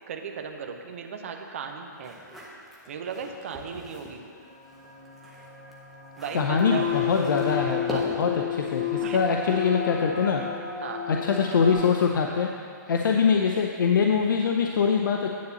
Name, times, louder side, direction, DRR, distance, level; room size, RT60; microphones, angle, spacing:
voice 1, 0.1-2.2 2.9-4.2 6.2-6.9 7.9-8.1 9.0-9.2 10.8-11.0, right 6 dB, 40° right, 3 dB, 0.7 m, -36 dB
sound 1, 2.0-4.2 4.6-8.4, right 1 dB, ahead, 0.6 m, -41 dB
sound 2, 4.5-11.7, left 8 dB, 30° left, 2.1 m, -32 dB
voice 2, 6.3-10.4 11.1-12.5 12.9-15.3, left 6 dB, 90° left, 2 dB, 0.6 m, -23 dB
9.4 x 4.1 x 6.9 m, 2.3 s
hypercardioid pair, 180°, 10 cm